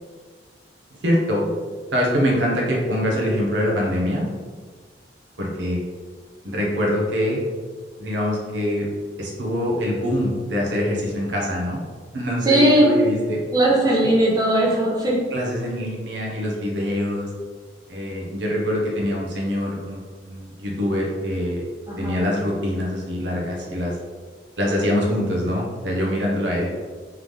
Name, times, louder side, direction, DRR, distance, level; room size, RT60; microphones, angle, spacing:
voice 1, 1.0-1.4 1.9-4.3 5.4-5.8 6.4-7.4 8.0-8.9 9.2-11.8 12.1-13.4 15.3-17.3 17.9-21.6 22.0-23.9 24.6-26.7, equal, 85° right, -2 dB, 1.0 m, -24 dB
voice 2, 12.4-12.9 13.5-15.2 21.9-22.2, right 1 dB, 20° right, -5 dB, 0.8 m, -18 dB
3.6 x 3.2 x 3.6 m, 1.5 s
head